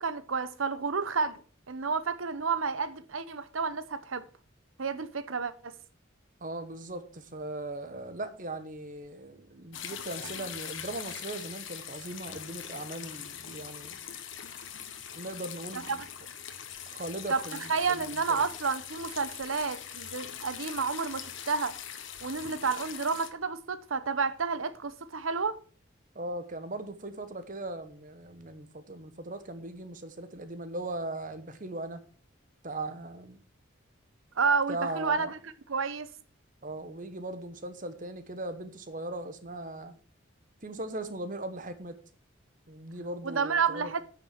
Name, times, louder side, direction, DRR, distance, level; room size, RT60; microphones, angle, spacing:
voice 1, 0.0-1.4 1.7-4.3 4.8-5.7 15.7-16.0 17.3-17.4 17.7-21.7 22.2-25.6 34.4-35.4 35.7-36.1 43.2-44.0, right 5 dB, 80° right, 0.9 m, -30 dB
voice 2, 6.4-14.0 15.1-16.0 16.9-18.4 26.1-32.0 32.6-33.4 34.7-35.4 36.6-39.9 40.6-42.0 42.7-43.9, right 2 dB, 40° right, 1.2 m, -39 dB
sound 1, 9.7-23.3, left 9 dB, 70° left, 1.2 m, -42 dB
9.4 x 6.2 x 5.9 m
head